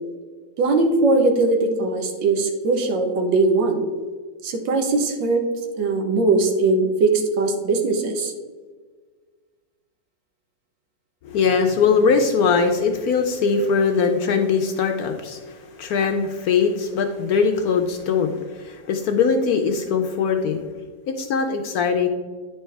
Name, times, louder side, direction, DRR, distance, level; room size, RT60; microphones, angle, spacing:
voice 1, 0.6-3.8 4.4-5.5 5.8-8.3 13.6-13.7, right 3 dB, 85° right, 5 dB, 1.6 m, -20 dB
voice 2, 11.2-20.7 21.1-22.1, left 5 dB, 70° left, 5 dB, 0.9 m, -21 dB
9.7 x 4.4 x 3.3 m, 1.5 s
omnidirectional pair, 2.0 m